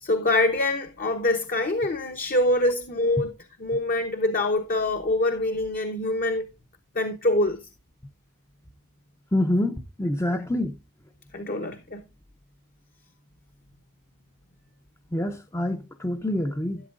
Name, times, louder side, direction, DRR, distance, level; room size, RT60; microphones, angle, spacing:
voice 1, 0.0-3.3 3.6-6.4 6.9-7.6 10.3-10.5 11.3-12.0, left 1 dB, 40° left, 0.9 m, -25 dB
voice 2, 9.3-10.7 15.1-16.8, left 1 dB, 15° left, 0.6 m, -26 dB
12.0 x 10.5 x 2.5 m
head